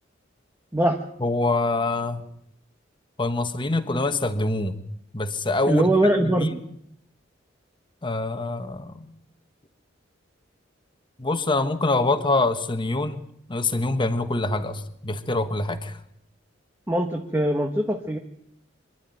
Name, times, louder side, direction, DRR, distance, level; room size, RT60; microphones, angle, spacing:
voice 1, 1.2-2.2 3.2-4.8 5.1-5.9 6.2-6.7 8.0-9.2 11.2-13.2 13.5-16.0, left 2 dB, 25° left, 8 dB, 1.5 m, -25 dB
voice 2, 5.7-6.6 16.9-18.2, right 1 dB, 10° right, 3 dB, 1.3 m, -22 dB
25.0 x 11.5 x 9.2 m, 0.74 s
head